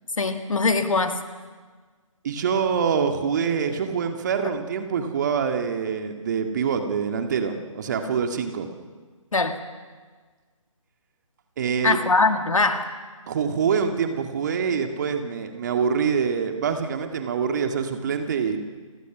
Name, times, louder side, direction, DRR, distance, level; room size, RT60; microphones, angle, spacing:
voice 1, 0.2-1.2 9.3-9.6 11.8-12.9, left 3 dB, 75° left, 7 dB, 2.1 m, -22 dB
voice 2, 2.2-8.7 11.6-12.0 13.3-18.6, right 6 dB, 35° right, 6 dB, 1.9 m, -25 dB
30.0 x 17.5 x 6.1 m, 1.4 s
figure-of-eight pair, 150°, 17 cm